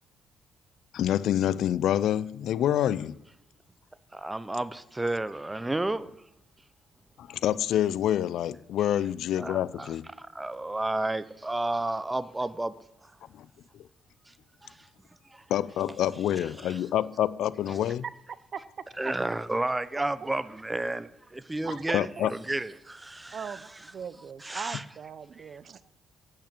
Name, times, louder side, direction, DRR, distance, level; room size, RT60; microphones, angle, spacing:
voice 1, 0.9-3.2 7.2-10.1 13.4-13.5 15.5-18.0 21.9-22.3, left 11 dB, 75° left, 0.4 m, -27 dB
voice 2, 4.1-6.1 9.4-12.7 13.0-13.1 14.3-14.4 14.6-14.9 15.3-15.4 16.4-16.8 17.7-17.8 19.0-23.6 24.4-24.8, right 2 dB, 15° right, 0.8 m, -32 dB
voice 3, 21.6-22.3 23.3-25.9, right 7 dB, 55° right, 0.7 m, -39 dB
8.8 x 8.8 x 8.6 m
cardioid pair, 90°, 0 cm